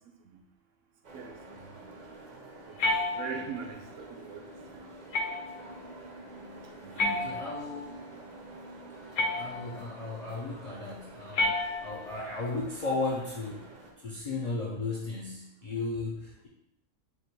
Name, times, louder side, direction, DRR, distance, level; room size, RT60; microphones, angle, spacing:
sound 1, 1.0-13.9, right 2 dB, 45° right, 0.6 m, -48 dB
voice 1, 1.1-1.9 2.7-2.8 3.1-4.8 6.8-7.4, right 6 dB, 70° right, 4 dB, 0.9 m, -42 dB
sound 2, 2.8-3.7 5.1-5.7 7.0-7.8 9.2-9.9 11.3-12.2, left 2 dB, 75° left, 0.9 m, -31 dB
voice 2, 7.0-8.0 9.3-11.5 11.8-13.7 14.0-16.5, left 3 dB, 45° left, -4 dB, 0.5 m, -35 dB
3.5 x 2.5 x 4.6 m, 0.80 s
omnidirectional pair, 1.4 m